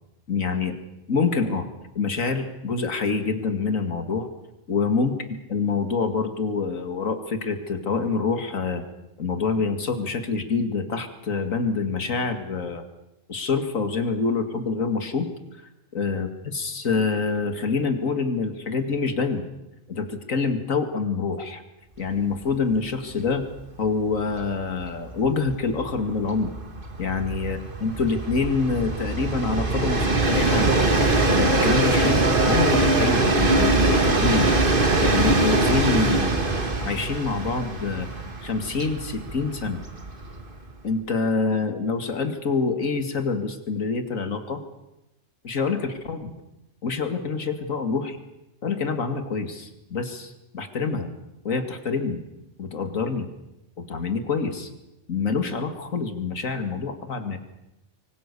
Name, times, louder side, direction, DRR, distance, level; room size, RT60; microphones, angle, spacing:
voice 1, 0.3-0.8 1.1-1.7 1.9-4.3 4.7-5.2 5.5-8.8 9.2-12.8 13.3-15.3 15.9-19.4 19.9-21.6 22.0-23.4 23.8-26.5 27.0-30.7 31.3-34.5 35.0-38.1 38.4-39.8 40.8-44.6 45.4-46.3 46.8-48.2 48.6-51.1 51.4-52.2 52.6-53.3 53.8-54.7 55.1-57.4, left 4 dB, 85° left, 7 dB, 2.5 m, -26 dB
Train, 22.4-22.6 22.9-23.0 23.3-40.7, right 2 dB, 40° right, 2.3 m, -23 dB
25.5 x 24.0 x 6.9 m, 0.90 s
omnidirectional pair, 1.3 m